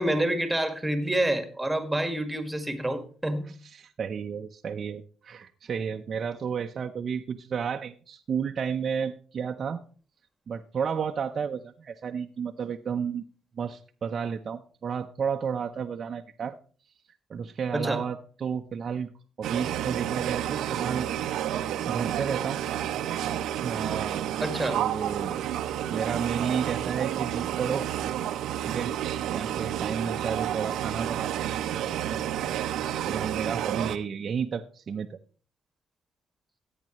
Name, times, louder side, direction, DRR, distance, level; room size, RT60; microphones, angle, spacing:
voice 1, 0.0-3.5 17.7-18.0 24.4-24.8, right 1 dB, 10° right, 8 dB, 1.8 m, -27 dB
voice 2, 3.6-9.8 10.5-13.2 13.6-16.6 17.3-19.1 19.4-21.1 21.8-22.6 23.5-24.3 24.7-25.4 25.9-27.9 28.6-28.9 29.3-31.3 31.7-32.2 33.1-35.2, right 6 dB, 50° right, 3 dB, 0.7 m, -32 dB
sound 1, 19.4-34.0, right 11 dB, 85° right, 0.7 m, -30 dB
15.0 x 8.9 x 3.1 m, 0.38 s
cardioid pair, 90°, 0 cm